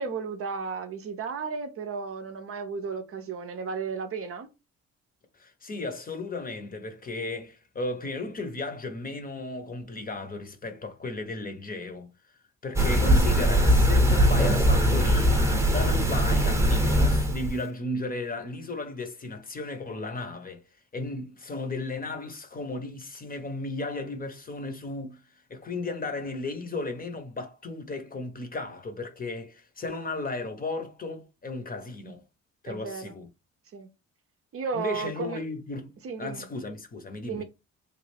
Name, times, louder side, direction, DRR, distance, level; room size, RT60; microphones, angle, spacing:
voice 1, 0.0-4.5 32.7-33.1 33.7-33.9 34.5-35.4 36.0-36.5 37.2-37.4, right 5 dB, 50° right, 0.6 m, -34 dB
voice 2, 5.4-12.1 12.6-20.6 20.9-25.2 25.5-32.2 32.6-33.3 34.7-37.4, left 2 dB, 30° left, 0.7 m, -35 dB
sound 1, 12.8-17.6, equal, 10° right, 0.8 m, -21 dB
3.2 x 2.3 x 3.3 m
cardioid pair, 90°, 30 cm